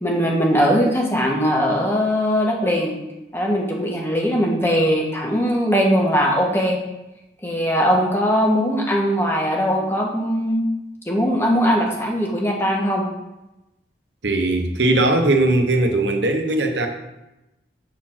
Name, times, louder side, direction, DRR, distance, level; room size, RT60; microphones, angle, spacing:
voice 1, 0.0-3.0 3.3-6.8 7.4-10.7 11.1-13.0, equal, 15° left, -1 dB, 1.3 m, -20 dB
voice 2, 14.2-16.9, right 2 dB, 85° right, 5 dB, 0.9 m, -19 dB
7.2 x 4.2 x 6.1 m, 0.95 s
head